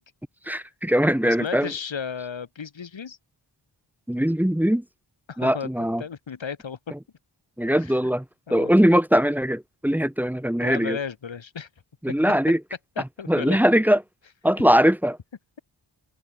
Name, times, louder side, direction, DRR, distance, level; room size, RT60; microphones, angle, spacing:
voice 1, 0.5-1.7 4.1-4.8 5.4-6.0 6.9-7.0 7.6-8.2 8.5-11.0 12.0-12.6 13.0-14.0 14.4-15.2, equal, 5° right, 1.0 m, -21 dB
voice 2, 1.2-3.2 5.3-5.7 6.0-6.8 7.8-7.9 8.5-8.7 10.6-11.7 13.0-13.6, left 6 dB, 65° left, 5.3 m, -34 dB
wide cardioid pair, 120°, 48 cm